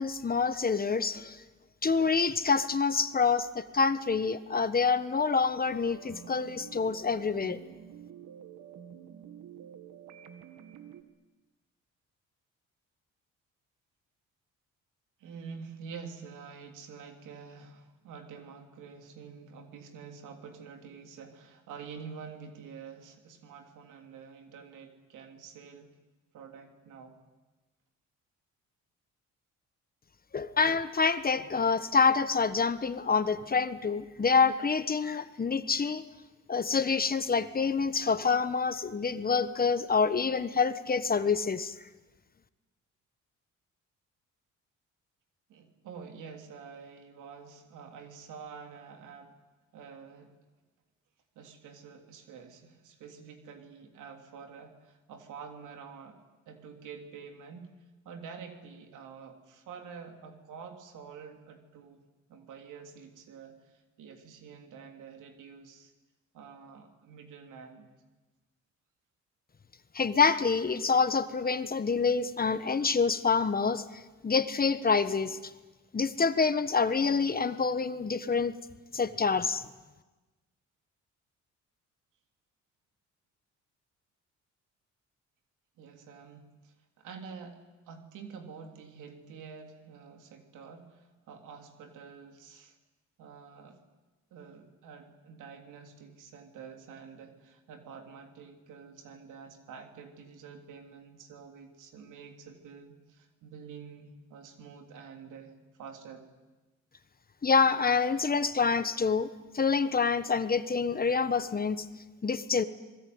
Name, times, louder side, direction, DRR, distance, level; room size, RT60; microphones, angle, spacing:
voice 1, 0.0-1.4 1.8-7.6 30.3-36.0 36.5-41.7 69.9-73.8 74.2-75.4 75.9-78.5 78.9-79.6 107.4-109.3 109.5-111.8 112.2-112.6, left 5 dB, 30° left, 12 dB, 1.3 m, -27 dB
sound 1, 5.6-11.0, right 9 dB, 70° right, 1.9 m, -49 dB
voice 2, 15.2-25.9 26.3-27.2 45.5-49.3 49.7-50.3 51.3-56.2 56.5-57.7 58.0-62.0 62.3-65.9 66.3-67.9 85.8-87.6 87.9-92.8 93.2-93.8 94.3-106.2, right 6 dB, 85° right, 5 dB, 3.2 m, -48 dB
26.0 x 21.0 x 9.6 m, 1.2 s
cardioid pair, 90°, 30 cm